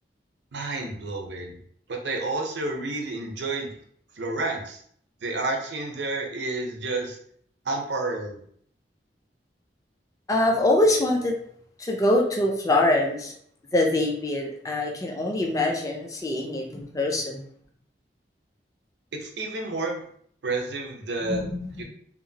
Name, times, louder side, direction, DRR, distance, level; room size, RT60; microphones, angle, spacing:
voice 1, 0.5-1.6 1.9-3.7 4.2-4.8 5.2-7.2 7.7-8.4 19.1-20.0 20.4-21.5 21.8-21.9, right 2 dB, 80° right, 2 dB, 0.6 m, -30 dB
voice 2, 10.3-11.3 11.8-13.3 13.7-17.4 21.3-21.8, left 1 dB, 20° left, 0 dB, 0.4 m, -24 dB
2.9 x 2.4 x 2.7 m, 0.63 s
head